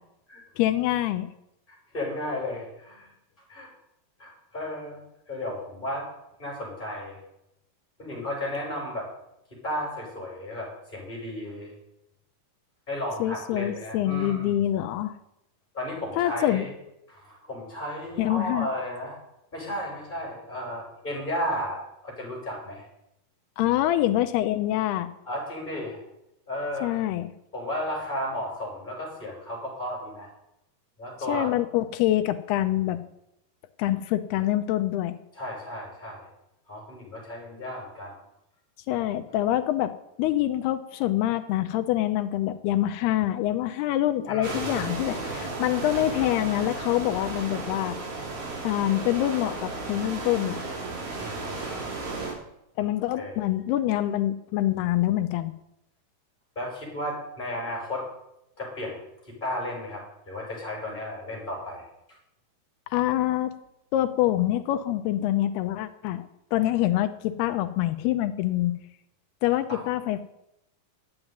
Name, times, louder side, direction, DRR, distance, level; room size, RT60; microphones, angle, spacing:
voice 1, 0.6-1.3 13.2-15.2 16.2-16.7 18.2-18.7 23.6-25.1 26.8-27.3 31.3-33.0 33.8-35.2 38.9-39.9 40.2-48.0 48.6-50.6 52.8-55.5 62.9-63.5 63.9-68.7 69.4-70.2, left 13 dB, 90° left, 9 dB, 2.7 m, -25 dB
voice 2, 1.7-3.1 3.5-3.7 4.2-5.0 5.3-6.1 6.4-7.2 8.0-9.1 9.6-11.7 12.9-14.6 15.7-16.7 17.1-19.2 19.5-22.8 25.3-26.0 26.5-26.9 27.5-30.3 31.0-31.5 35.3-36.3 36.7-38.2 44.3-44.8 51.2-51.9 53.2-53.5 56.5-58.1 58.6-59.0 59.3-61.8 69.7-69.8, left 1 dB, 10° left, -2 dB, 6.7 m, -34 dB
sound 1, 44.4-52.3, right 3 dB, 75° right, 5.9 m, -34 dB
12.0 x 8.9 x 9.4 m, 0.83 s
omnidirectional pair, 4.6 m